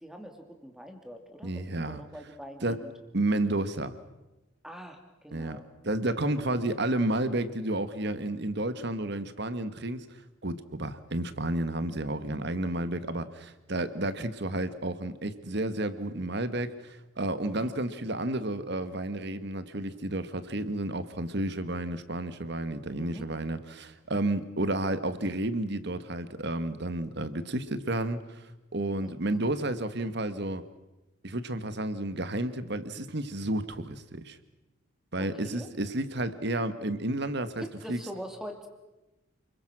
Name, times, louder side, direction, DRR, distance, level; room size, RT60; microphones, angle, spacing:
voice 1, 0.0-2.9 4.6-5.6 17.5-17.6 22.9-23.3 29.0-29.4 35.2-35.7 37.6-38.7, equal, ahead, 4 dB, 2.7 m, -43 dB
voice 2, 1.4-2.0 2.6-2.8 3.1-4.0 5.3-10.0 10.4-28.4 28.7-30.6 31.2-34.4 35.1-38.0, right 1 dB, 55° right, 12 dB, 1.5 m, -31 dB
29.5 x 22.0 x 6.2 m, 1.0 s
head